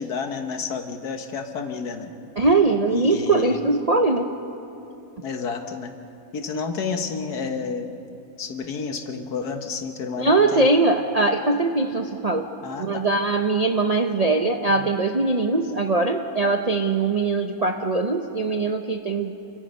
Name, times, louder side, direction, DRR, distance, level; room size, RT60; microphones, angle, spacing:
voice 1, 0.0-2.1 2.9-3.6 5.2-5.9 6.3-7.9 8.4-10.7 12.6-13.1 14.7-14.9, left 5 dB, 70° left, 6 dB, 1.8 m, -30 dB
voice 2, 2.4-4.3 10.2-12.5 12.8-19.3, right 3 dB, 40° right, 4 dB, 0.5 m, -21 dB
28.0 x 23.5 x 5.4 m, 2.8 s
omnidirectional pair, 1.8 m